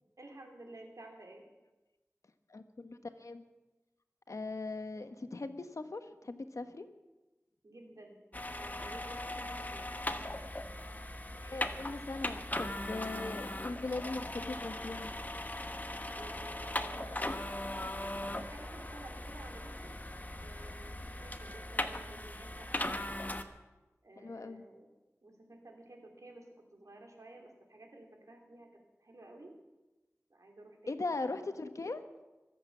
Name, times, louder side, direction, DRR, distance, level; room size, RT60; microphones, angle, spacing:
voice 1, 0.2-1.4 7.6-10.0 16.1-17.7 18.3-19.9 20.4-22.9 24.0-24.9 25.2-26.5 26.7-28.7 29.0-29.5 30.3-31.5, right 2 dB, 75° right, 2 dB, 3.2 m, -53 dB
voice 2, 2.5-3.4 4.3-6.9 11.4-15.1 22.1-22.2 24.2-24.7 30.9-32.0, left 3 dB, 75° left, 9 dB, 1.2 m, -40 dB
sound 1, 8.3-23.4, left 1 dB, 30° left, 1.1 m, -39 dB
23.0 x 8.1 x 7.2 m, 1.1 s
wide cardioid pair, 60°, 5 cm